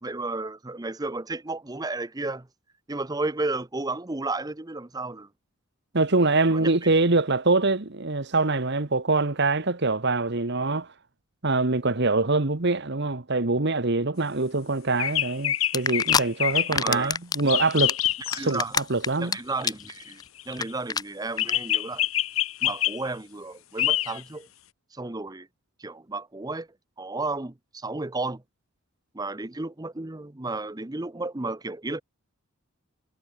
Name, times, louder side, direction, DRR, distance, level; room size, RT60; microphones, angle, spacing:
voice 1, 0.0-2.5 2.9-5.3 6.5-6.7 16.7-17.2 18.3-18.8 19.2-20.2 20.5-22.0 22.6-24.5 24.9-25.5 25.8-26.7 27.0-28.4 29.1-32.0, right 2 dB, 20° right, 0.8 m, -32 dB
voice 2, 5.9-10.9 11.4-18.0 18.4-19.3, right 3 dB, 55° right, 1.5 m, -24 dB
sound 1, 15.0-16.8 17.5-18.6 19.5-20.5 21.4-23.0 23.8-24.2, left 13 dB, 80° left, 1.8 m, -26 dB
sound 2, 15.7-16.2 16.6-17.4 17.7-19.3 19.6-19.9 20.2-20.3 20.5-20.6 20.9-21.0 21.4-21.5, left 6 dB, 20° left, 0.4 m, -25 dB
head